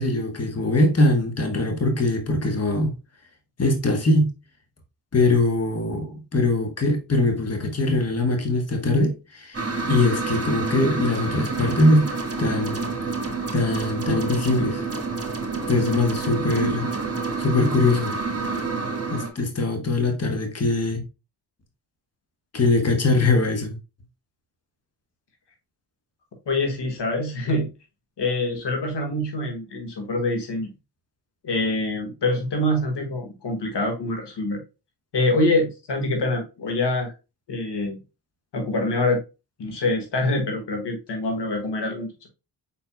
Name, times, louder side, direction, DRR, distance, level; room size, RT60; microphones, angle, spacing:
voice 1, 0.0-2.9 3.6-4.3 5.1-12.1 12.4-12.7 13.5-14.9 15.7-16.9 17.4-18.2 19.1-21.0 22.5-23.8, left 2 dB, 35° left, 1.3 m, -22 dB
sound 1, 9.5-19.3, right 4 dB, 35° right, 1.5 m, -28 dB
voice 2, 26.5-27.7 28.2-30.7 31.4-34.6 35.1-37.1 37.5-38.0 38.5-39.2 39.6-42.3, left 2 dB, 80° left, 1.6 m, -25 dB
5.4 x 4.4 x 2.2 m
cardioid pair, 55°, 41 cm